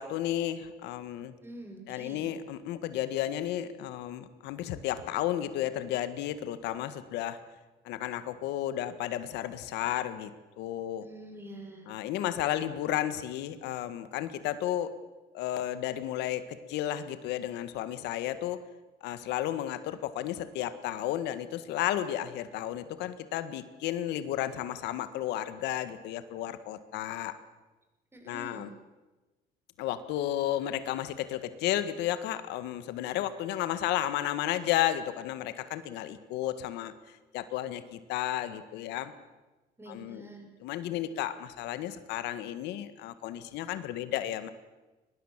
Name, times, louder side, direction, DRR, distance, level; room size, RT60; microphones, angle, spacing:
voice 1, 0.0-1.3 1.9-7.4 7.8-10.3 10.6-11.0 11.9-14.9 15.3-18.6 19.0-27.4 28.3-28.7 29.8-36.9 37.3-39.1 39.9-40.2 40.6-44.5, left 12 dB, 90° left, 12 dB, 1.7 m, -33 dB
voice 2, 1.4-2.3 11.0-11.9 28.1-28.7 39.8-40.5, right 1 dB, 15° right, 2 dB, 6.2 m, -46 dB
23.0 x 21.0 x 7.5 m, 1.1 s
cardioid pair, 110°, 17 cm